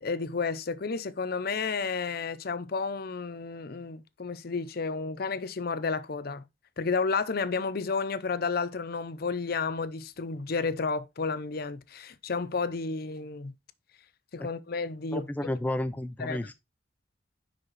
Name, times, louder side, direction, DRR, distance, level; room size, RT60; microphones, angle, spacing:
voice 1, 0.0-6.4 6.8-13.5 14.3-15.3 16.2-16.4, left 4 dB, 55° left, 0.6 m, -31 dB
voice 2, 15.1-16.5, left 1 dB, 10° left, 0.3 m, -32 dB
5.8 x 5.3 x 4.1 m
head